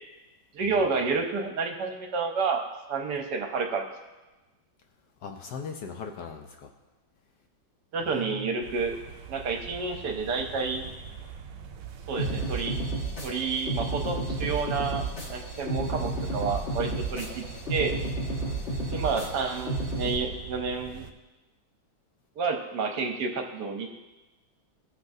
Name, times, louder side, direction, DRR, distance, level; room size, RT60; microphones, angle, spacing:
voice 1, 0.5-2.6 2.9-3.8 7.9-8.9 9.3-10.8 12.1-12.8 13.2-17.4 17.7-17.9 18.9-21.1 22.4-23.9, right 4 dB, 65° right, 4 dB, 1.2 m, -30 dB
voice 2, 5.2-6.7 8.0-8.6 18.4-18.6, left 5 dB, 70° left, 3 dB, 1.1 m, -40 dB
sound 1, 8.6-21.1, right 7 dB, 85° right, 0.7 m, -43 dB
sound 2, 12.2-20.2, right 2 dB, 35° left, 1.6 m, -32 dB
16.5 x 5.8 x 2.6 m, 1.1 s
omnidirectional pair, 2.2 m